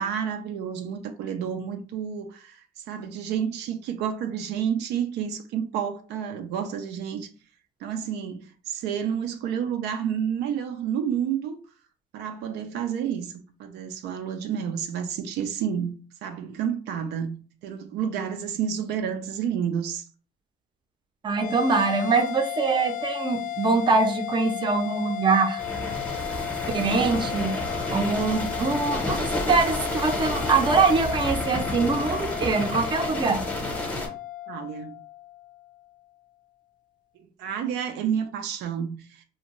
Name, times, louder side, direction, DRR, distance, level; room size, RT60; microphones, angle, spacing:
voice 1, 0.0-2.6 2.9-7.3 7.8-11.6 12.1-15.9 16.2-17.4 17.6-20.1 34.5-35.0 37.4-39.2, right 8 dB, 80° right, 0.4 m, -30 dB
voice 2, 21.2-25.6 26.7-33.4, right 4 dB, 25° right, 0.5 m, -23 dB
sound 1, 21.3-35.9, left 13 dB, 55° left, 0.4 m, -35 dB
sound 2, 25.6-34.1, left 1 dB, 10° left, 0.8 m, -30 dB
2.5 x 2.1 x 3.0 m
cardioid pair, 110°, 17 cm